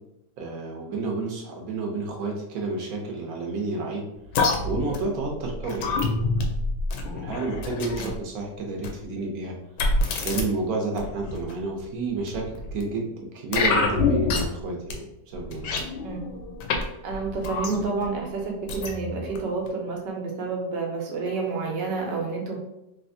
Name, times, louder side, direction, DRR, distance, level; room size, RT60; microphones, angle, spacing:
voice 1, 0.4-4.0 4.6-6.5 7.1-9.5 10.2-13.0 13.3-15.9, right 3 dB, 65° right, 0 dB, 1.0 m, -30 dB
sound 1, 4.3-8.2 8.8-9.0 9.8-10.4 10.9-11.5 12.3-12.8 13.5-14.6 14.9-15.0 15.3-16.8 17.1-18.1 18.7-19.4 19.7-19.8, left 3 dB, 85° left, 1.2 m, -27 dB
voice 2, 17.0-22.6, right 4 dB, 85° right, 0 dB, 1.5 m, -29 dB
3.3 x 2.8 x 2.6 m, 0.90 s
omnidirectional pair, 1.8 m